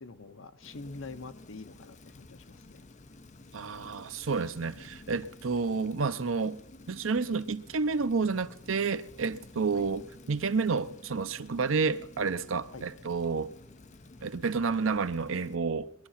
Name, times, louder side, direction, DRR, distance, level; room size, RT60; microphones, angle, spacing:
voice 1, 0.0-2.9 9.7-9.8 12.7-12.8, left 3 dB, 70° left, 0.9 m, -45 dB
Rain, 0.6-15.6, left 2 dB, 35° left, 0.7 m, -52 dB
voice 2, 3.5-6.6 6.9-13.5 14.2-15.9, right 4 dB, 70° right, 0.7 m, -30 dB
21.5 x 11.5 x 5.7 m
head